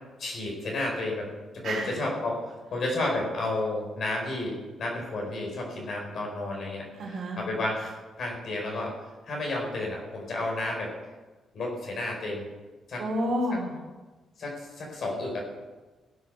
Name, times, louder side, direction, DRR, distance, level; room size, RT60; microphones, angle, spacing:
voice 1, 0.2-1.3 1.5-2.4 2.7-6.8 7.4-8.9 9.3-10.9 11.5-12.5 12.9-13.0 14.4-15.4, left 2 dB, 45° left, -1 dB, 4.6 m, -31 dB
voice 2, 1.6-2.0 6.9-7.4 13.0-13.7, equal, 50° right, -1 dB, 3.8 m, -30 dB
17.0 x 7.9 x 6.8 m, 1.2 s
cardioid pair, 170°, 0 cm